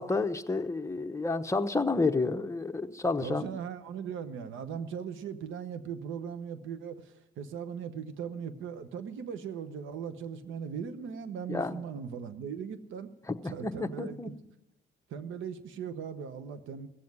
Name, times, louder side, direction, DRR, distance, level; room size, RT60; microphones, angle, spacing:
voice 1, 0.0-3.4 11.5-11.8 13.3-14.3, left 3 dB, 15° left, 6 dB, 0.9 m, -30 dB
voice 2, 3.2-13.1 13.4-14.3 15.1-16.9, right 7 dB, 80° right, 11 dB, 1.0 m, -39 dB
16.0 x 7.5 x 9.4 m, 0.93 s
cardioid pair, 90°, 20 cm